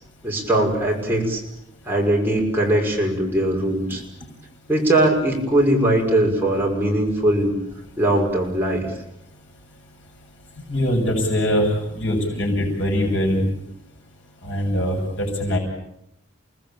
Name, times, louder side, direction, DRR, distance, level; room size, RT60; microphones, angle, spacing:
voice 1, 0.2-1.4 1.9-4.0 4.7-7.6 8.0-8.9, right 1 dB, 10° right, -2 dB, 5.9 m, -20 dB
voice 2, 10.7-13.4 14.4-15.6, equal, 70° left, 1 dB, 7.3 m, -22 dB
29.5 x 20.0 x 8.9 m, 0.82 s
head